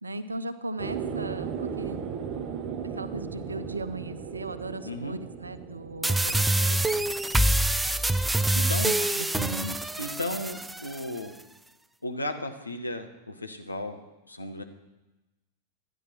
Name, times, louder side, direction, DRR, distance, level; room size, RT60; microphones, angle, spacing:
voice 1, 0.0-2.1 2.8-6.8 8.8-9.8, right 2 dB, 80° right, 12 dB, 0.6 m, -37 dB
sound 1, 0.8-7.6, right 7 dB, 35° right, 0.9 m, -37 dB
voice 2, 4.8-5.2 8.5-8.9 10.0-11.4 12.0-14.0 14.3-14.6, left 1 dB, 85° left, 6 dB, 1.0 m, -34 dB
sound 2, 6.0-11.0, right 1 dB, 5° right, 0.3 m, -25 dB
12.0 x 10.0 x 4.3 m, 1.0 s
figure-of-eight pair, 90°, 0 cm